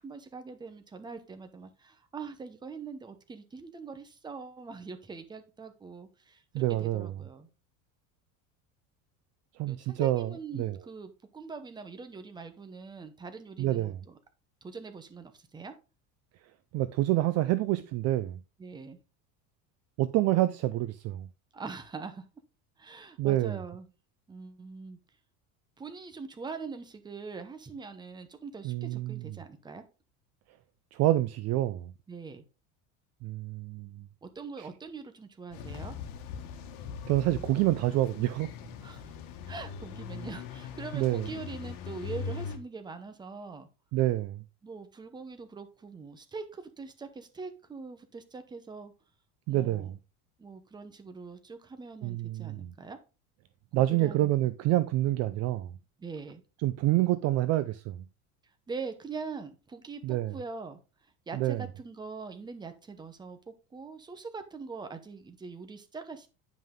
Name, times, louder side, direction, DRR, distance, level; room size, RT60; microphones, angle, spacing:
voice 1, 0.0-7.5 9.7-14.2 14.6-15.7 18.6-19.0 21.5-22.2 22.8-23.9 24.3-25.0 25.8-29.8 32.1-32.4 34.2-35.9 38.8-39.2 39.4-43.7 44.6-48.9 49.5-49.9 50.4-53.0 53.7-54.5 56.0-56.4 58.7-60.8 61.3-66.3, right 4 dB, 10° right, 0.8 m, -43 dB
voice 2, 6.5-7.1 9.6-10.8 13.6-14.0 16.7-18.4 20.0-21.3 23.2-23.6 28.6-29.4 30.9-31.9 33.2-34.0 34.6-34.7 37.1-38.5 40.9-41.3 43.9-44.4 49.5-50.0 52.0-52.7 53.7-55.7 56.6-58.0 60.0-60.4 61.3-61.6, right 15 dB, 45° right, 0.4 m, -27 dB
sound 1, 35.5-42.6, left 6 dB, 75° left, 1.6 m, -41 dB
9.4 x 5.5 x 3.7 m
cardioid pair, 150°, 38 cm